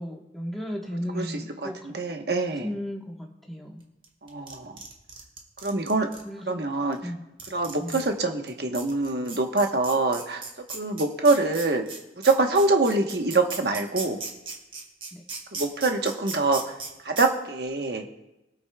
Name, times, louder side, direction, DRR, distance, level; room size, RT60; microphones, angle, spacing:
voice 1, 0.0-1.9 2.6-3.8 6.2-6.6 7.0-7.2 7.8-8.0 10.9-11.0 15.1-15.2, equal, ahead, -2 dB, 1.2 m, -35 dB
voice 2, 1.6-2.7 4.2-4.8 5.6-6.1 6.5-7.0 7.5-10.4 10.7-11.8 12.2-14.2 15.5-16.6 17.0-18.0, right 3 dB, 65° right, 4 dB, 1.1 m, -24 dB
sound 1, 4.0-6.2 6.9-7.0 7.4-8.1 8.5-8.6 8.7-16.9 17.2-17.3, right 4 dB, 30° right, 1.7 m, -36 dB
22.5 x 8.2 x 2.3 m, 0.99 s
head